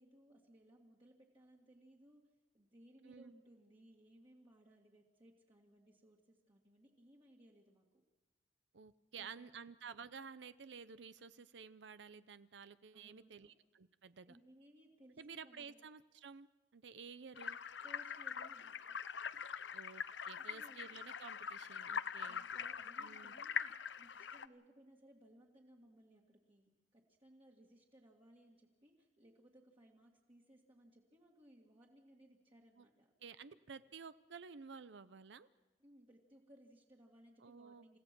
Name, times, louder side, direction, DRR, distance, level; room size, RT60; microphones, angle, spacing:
voice 1, 0.0-2.2 2.5-8.0 9.1-9.5 12.9-13.5 14.2-15.8 17.8-19.0 20.5-21.0 22.3-33.1 35.8-38.0, right 1 dB, 30° right, -3 dB, 2.0 m, -64 dB
voice 2, 8.7-14.4 15.2-17.6 19.7-22.4 23.0-23.4 32.8-32.9 33.2-35.5 37.4-37.8, right 6 dB, 75° right, 14 dB, 0.6 m, -53 dB
sound 1, 17.4-24.5, left 7 dB, 75° left, 0.7 m, -43 dB
28.5 x 16.0 x 6.1 m, 1.2 s
head